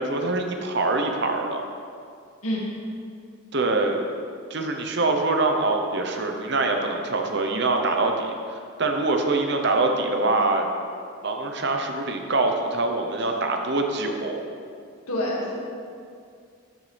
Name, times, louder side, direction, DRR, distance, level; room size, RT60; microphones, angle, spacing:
voice 1, 0.0-1.6 3.5-4.0 4.5-10.7 11.2-14.4, right 2 dB, 50° right, 3 dB, 0.9 m, -24 dB
voice 2, 15.1-15.5, left 1 dB, 85° left, -4 dB, 2.2 m, -26 dB
12.5 x 7.1 x 3.4 m, 2.3 s
head